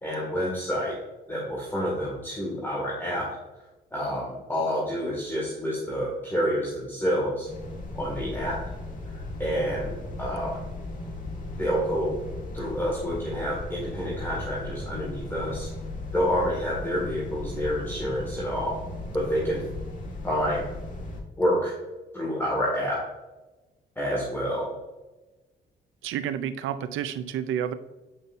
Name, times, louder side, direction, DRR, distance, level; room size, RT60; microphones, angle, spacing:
voice 1, 0.0-0.9 1.3-3.3 3.9-7.5 7.9-8.6 9.1-10.6 11.6-12.2 12.5-15.7 16.1-18.7 19.1-19.6 20.2-20.7 21.4-21.7 22.1-23.0 24.0-24.7, equal, 10° left, -5 dB, 2.0 m, -28 dB
sound 1, 7.4-21.2, left 2 dB, 40° left, 1.7 m, -37 dB
voice 2, 26.0-27.7, right 9 dB, 85° right, 12 dB, 0.5 m, -30 dB
8.6 x 5.3 x 2.6 m, 1.1 s
cardioid pair, 90°, 20 cm